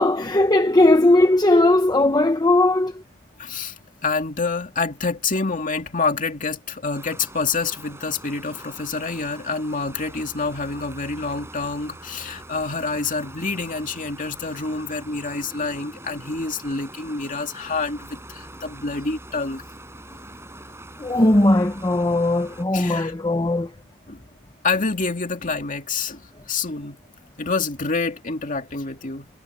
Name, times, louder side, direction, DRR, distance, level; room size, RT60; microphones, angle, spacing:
voice 1, 0.0-2.9 21.0-23.7, left 2 dB, 20° left, 0.8 m, -18 dB
voice 2, 3.4-3.7 4.0-19.6 22.7-23.1 24.1-24.2 24.6-26.2 26.5-27.0 27.4-29.3, left 4 dB, 40° left, 2.4 m, -27 dB
sound 1, 6.9-22.7, right 1 dB, 10° right, 5.7 m, -43 dB
head